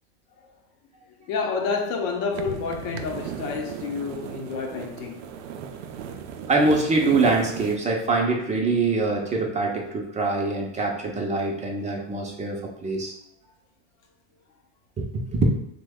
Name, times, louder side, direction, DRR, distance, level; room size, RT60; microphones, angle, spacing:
voice 1, 1.2-5.3 12.3-12.4, left 5 dB, 55° left, 0.8 m, -29 dB
sound 1, 2.3-7.8, right 8 dB, 85° right, 0.5 m, -36 dB
voice 2, 6.5-12.6 12.8-13.1 15.3-15.4, right 3 dB, 20° right, 0.5 m, -24 dB
3.0 x 2.2 x 3.5 m
supercardioid pair, 115°, 35 cm